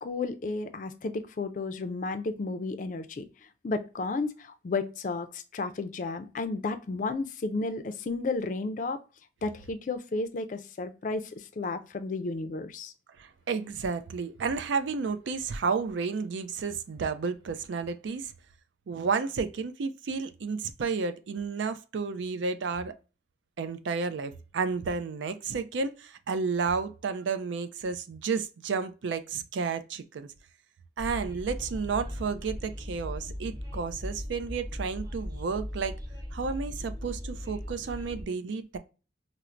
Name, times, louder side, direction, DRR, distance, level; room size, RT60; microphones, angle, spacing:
voice 1, 0.0-3.3 3.6-9.0 9.4-12.9, left 3 dB, 45° left, 0.4 m, -33 dB
voice 2, 13.2-18.3 18.9-22.9 23.6-30.3 31.0-36.0 36.3-38.8, right 5 dB, 85° right, 0.4 m, -32 dB
Train, 31.0-38.2, equal, 20° right, 0.9 m, -38 dB
4.3 x 2.0 x 2.4 m
head